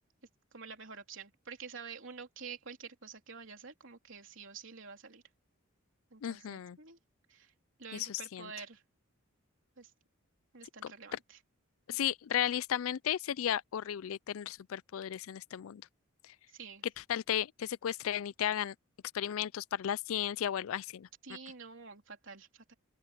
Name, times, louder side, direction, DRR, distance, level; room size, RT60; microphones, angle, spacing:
voice 1, 0.5-5.2 6.1-7.0 7.3-7.5 7.8-8.8 9.8-9.9 10.5-11.4 16.5-16.8 21.2-22.7, right 5 dB, 60° right, 3.7 m, -48 dB
voice 2, 6.2-6.8 7.9-8.5 11.9-15.8 16.2-16.3 17.0-18.7 19.1-21.1, left 10 dB, 75° left, 0.4 m, -34 dB
open air
head